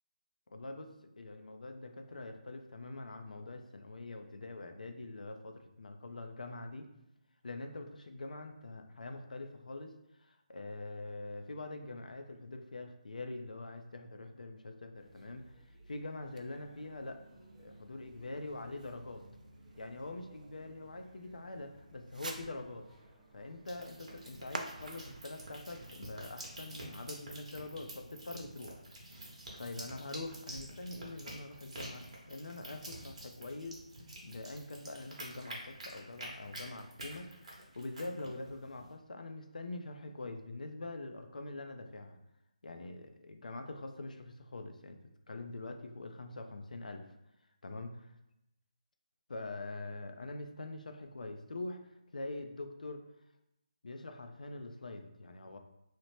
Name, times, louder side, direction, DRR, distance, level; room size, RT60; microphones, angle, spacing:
voice 1, 0.5-6.9 7.4-17.2 17.6-19.2 19.8-22.9 23.3-28.8 29.6-33.8 34.2-42.2 42.6-45.0 45.3-47.0 47.6-48.1 49.3-51.8 52.1-53.0 53.8-55.6, left 2 dB, 80° left, 6 dB, 0.4 m, -44 dB
sound 1, 14.9-28.2, right 1 dB, 5° right, 0.5 m, -63 dB
Fireworks, 16.3-27.0, right 2 dB, 75° right, 0.4 m, -51 dB
sound 2, 23.7-38.9, right 1 dB, 50° right, 0.8 m, -49 dB
2.8 x 2.0 x 3.0 m, 0.86 s
figure-of-eight pair, 160°, 4 cm